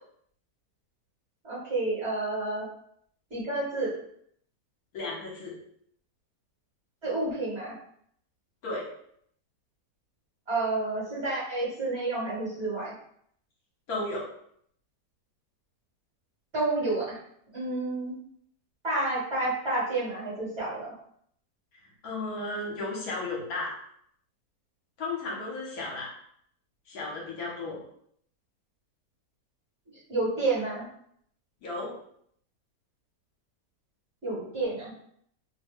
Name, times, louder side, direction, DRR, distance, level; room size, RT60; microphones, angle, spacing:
voice 1, 1.4-2.6 3.3-3.9 7.0-7.7 10.5-12.9 16.5-17.2 17.5-18.2 18.8-20.9 30.1-30.8 34.2-34.9, right 2 dB, 45° right, -8 dB, 1.3 m, -29 dB
voice 2, 4.9-5.5 8.6-8.8 13.9-14.3 22.0-23.8 25.0-26.1 26.9-27.8 31.6-31.9, left 2 dB, 65° left, -3 dB, 1.3 m, -34 dB
2.9 x 2.2 x 3.5 m, 0.67 s
omnidirectional pair, 1.8 m